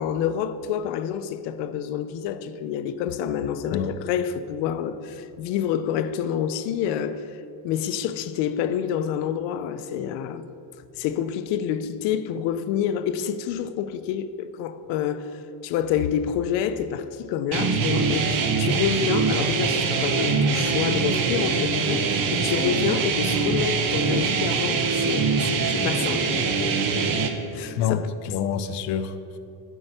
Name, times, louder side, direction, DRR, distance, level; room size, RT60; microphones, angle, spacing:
voice 1, 0.0-7.3 7.6-10.5 11.0-27.2 27.5-28.1, left 9 dB, 85° left, 0.6 m, -28 dB
sound 1, 17.5-27.3, right 5 dB, 55° right, 1.0 m, -23 dB
voice 2, 27.8-29.4, left 8 dB, 45° left, 0.4 m, -27 dB
9.8 x 4.7 x 7.9 m
cardioid pair, 160°, 42 cm